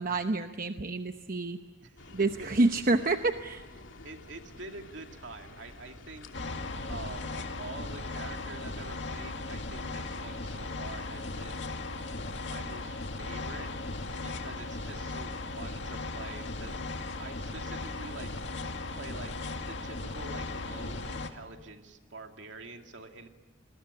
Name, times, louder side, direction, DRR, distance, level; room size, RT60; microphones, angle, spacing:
voice 1, 0.0-1.6 2.1-3.6, right 2 dB, 50° right, 7 dB, 0.9 m, -28 dB
sound 1, 2.0-7.5, left 2 dB, 85° left, 2.7 m, -50 dB
voice 2, 4.0-6.3 6.8-11.6 12.4-13.7 14.2-18.3 18.9-19.3 19.7-23.3, right 3 dB, 70° right, 4 dB, 2.6 m, -46 dB
sound 2, 6.3-21.3, left 2 dB, 65° left, 2.3 m, -37 dB
28.5 x 21.0 x 10.0 m, 1.2 s
head